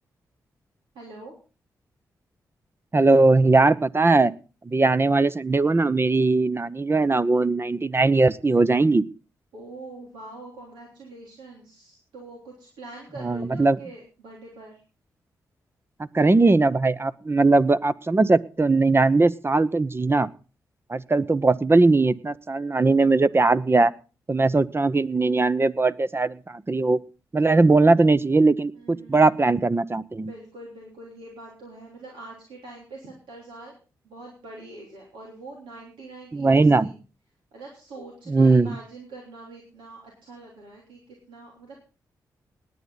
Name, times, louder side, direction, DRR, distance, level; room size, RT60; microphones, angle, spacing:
voice 1, 0.9-1.3 9.5-14.8 28.7-29.3 30.2-33.7 34.0-37.0 37.5-41.8, right 2 dB, 80° right, -2 dB, 3.4 m, -44 dB
voice 2, 2.9-4.3 4.6-9.0 13.2-13.8 16.1-20.3 20.9-23.9 24.3-27.0 27.3-30.3 36.3-36.9 38.3-38.7, right 3 dB, 30° right, 15 dB, 0.9 m, -20 dB
19.0 x 9.3 x 4.0 m, 0.33 s
supercardioid pair, 40°, 8 cm